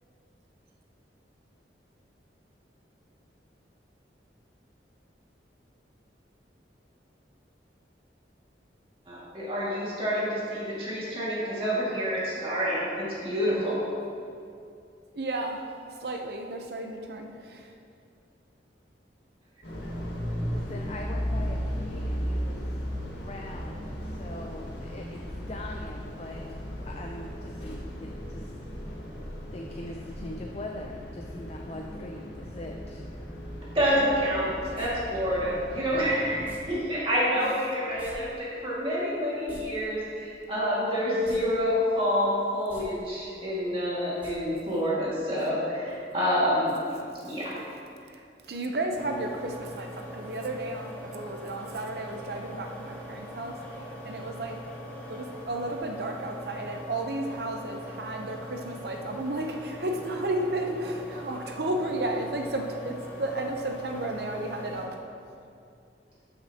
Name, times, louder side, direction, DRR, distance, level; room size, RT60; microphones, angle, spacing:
voice 1, 9.1-13.8 33.7-34.5 34.7-46.7 47.2-47.5, equal, 30° right, -8 dB, 2.0 m, -28 dB
voice 2, 15.1-15.7 16.0-17.7 37.4-37.5 48.1-53.6 54.0-54.6 55.1-65.0, right 1 dB, 60° right, 3 dB, 0.7 m, -33 dB
sound 1, 19.6-36.5, equal, 80° left, 1.8 m, -36 dB
voice 3, 20.5-22.6 23.2-23.8 24.2-26.4 26.9-28.5 29.5-33.0, left 2 dB, 35° left, 1 dB, 0.4 m, -41 dB
sound 2, 34.7-34.9 36.4-36.6 38.0-38.1 38.4-38.5 39.3-39.6 41.2-41.4 41.8-41.9 42.6-42.8 44.2-44.3 44.6-44.7, equal, 10° right, 1.3 m, -47 dB
sound 3, 48.9-64.9, equal, 10° left, 1.1 m, -42 dB
12.5 x 6.0 x 2.9 m, 2.4 s
head